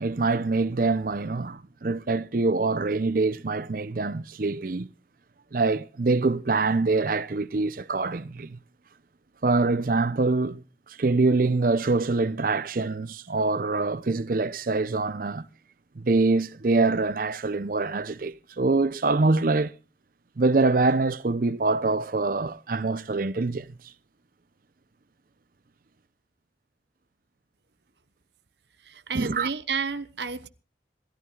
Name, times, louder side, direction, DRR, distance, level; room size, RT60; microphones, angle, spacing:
voice 1, 0.0-4.9 5.5-8.6 9.4-15.5 16.0-19.7 20.4-23.7 29.1-29.5, right 3 dB, 50° right, 0.6 m, -25 dB
voice 2, 28.8-30.5, right 5 dB, 70° right, 1.0 m, -31 dB
27.0 x 14.0 x 2.3 m
head